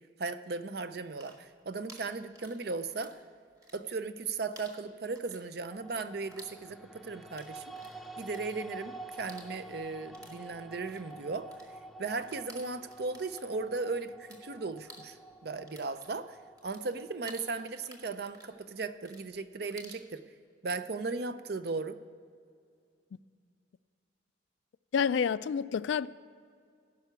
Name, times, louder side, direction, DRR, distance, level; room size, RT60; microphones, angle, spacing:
voice 1, 0.2-3.2 3.7-7.6 8.2-11.5 12.0-15.2 15.4-20.2 20.6-22.0, right 3 dB, 55° right, 0.5 m, -37 dB
sound 1, 1.1-3.2 3.5-4.2 4.5-14.4 14.7-20.1, right 1 dB, 20° right, 1.4 m, -55 dB
sound 2, 5.7-17.9, right 2 dB, ahead, 0.4 m, -48 dB
voice 2, 24.9-26.1, left 7 dB, 70° left, 0.3 m, -28 dB
15.0 x 5.8 x 8.1 m
head